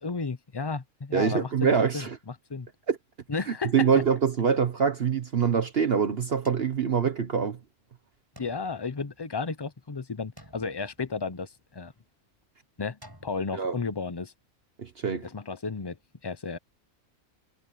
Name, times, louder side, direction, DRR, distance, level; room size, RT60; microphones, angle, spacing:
voice 1, 0.0-2.1 2.5-2.7 3.3-3.9 8.4-11.9 12.8-14.3 15.2-16.0 16.2-16.6, left 4 dB, 25° left, 0.6 m, -33 dB
voice 2, 1.1-2.2 2.9-3.0 3.7-7.6 13.5-13.8 14.8-15.3, right 6 dB, 50° right, 1.1 m, -24 dB
sound 1, 6.4-7.6 8.4-9.8 10.4-11.7 13.0-13.6, equal, 15° right, 7.5 m, -54 dB
omnidirectional pair, 1.4 m